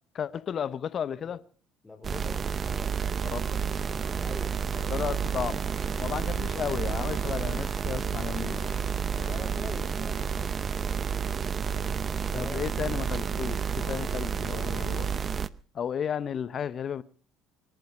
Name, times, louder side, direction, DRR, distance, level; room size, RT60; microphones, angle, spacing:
voice 1, 0.1-1.4 3.3-3.6 4.9-5.6 6.0-8.8 12.3-13.6 13.9-15.1 15.7-17.0, left 8 dB, 50° left, 0.9 m, -33 dB
voice 2, 1.8-2.9 4.2-4.7 9.2-10.5 12.1-12.7, left 2 dB, 15° left, 4.1 m, -44 dB
sound 1, 2.0-15.5, right 6 dB, 40° right, 0.7 m, -30 dB
sound 2, 3.5-15.0, left 9 dB, 75° left, 3.4 m, -51 dB
25.0 x 9.2 x 5.5 m
hypercardioid pair, 70°, 0 cm